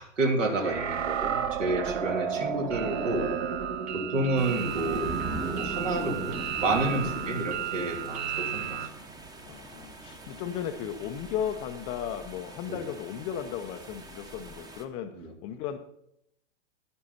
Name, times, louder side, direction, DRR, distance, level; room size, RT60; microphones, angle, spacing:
voice 1, 0.0-3.3 3.9-6.4 6.6-8.8 12.7-12.8 15.2-15.3, right 2 dB, 80° right, 3 dB, 2.8 m, -30 dB
sound 1, 0.6-8.9, right 8 dB, 60° right, 1.4 m, -32 dB
voice 2, 2.2-2.6 7.0-7.7 9.5-15.8, left 9 dB, 15° left, 6 dB, 0.3 m, -36 dB
sound 2, 4.4-14.8, right 2 dB, 10° right, 0.7 m, -41 dB
10.5 x 9.6 x 4.2 m, 0.76 s
hypercardioid pair, 125°, 37 cm